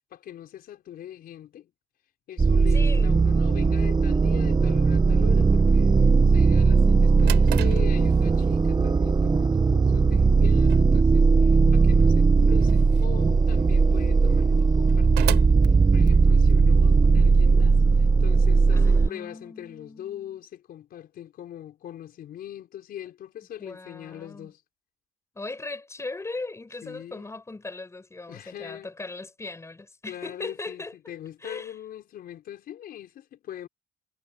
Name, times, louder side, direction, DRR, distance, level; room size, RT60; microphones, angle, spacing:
voice 1, 0.0-1.7 2.3-15.5 15.9-17.8 18.2-24.6 26.8-27.3 28.3-28.9 30.0-33.7, left 11 dB, 60° left, 5.1 m, -41 dB
sound 1, 2.4-19.1, right 4 dB, 25° right, 1.8 m, -19 dB
voice 2, 2.7-3.2 18.7-20.4 23.6-24.5 25.3-30.9 31.4-31.7, left 3 dB, 15° left, 6.6 m, -38 dB
Drawer open or close, 6.9-16.6, right 17 dB, 85° right, 6.2 m, -39 dB
cardioid pair, 110°, 17 cm